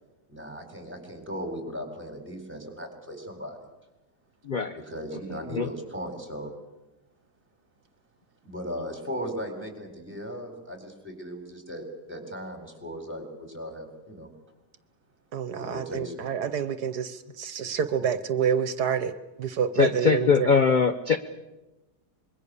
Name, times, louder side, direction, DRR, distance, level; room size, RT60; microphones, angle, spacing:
voice 1, 0.3-3.7 4.8-6.5 8.4-14.3 15.6-16.2, equal, 5° right, 5 dB, 4.3 m, -37 dB
voice 2, 4.4-4.8 5.5-5.7 19.7-21.2, left 5 dB, 40° left, 9 dB, 0.8 m, -22 dB
voice 3, 15.3-17.1 17.4-19.1 19.4-20.3, right 7 dB, 75° right, 12 dB, 1.5 m, -27 dB
25.5 x 22.5 x 6.9 m, 1.0 s
omnidirectional pair, 1.8 m